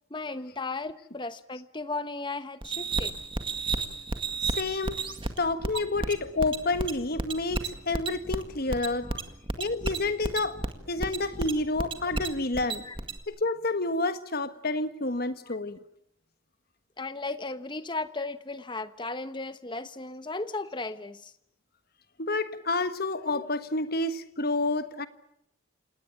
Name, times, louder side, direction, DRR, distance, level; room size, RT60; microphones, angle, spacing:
voice 1, 0.1-3.1 5.7-5.8 9.0-9.2 12.8-13.0 15.5-15.6 17.0-21.3 23.3-23.5, left 3 dB, 25° left, 1.1 m, -36 dB
sound 1, 2.6-13.2, right 3 dB, 25° right, 1.9 m, -32 dB
voice 2, 4.4-5.0 5.4-9.1 9.6-10.6 10.9-12.8 13.3-15.8 22.2-25.1, left 2 dB, 50° left, 1.5 m, -29 dB
29.0 x 18.0 x 9.0 m
head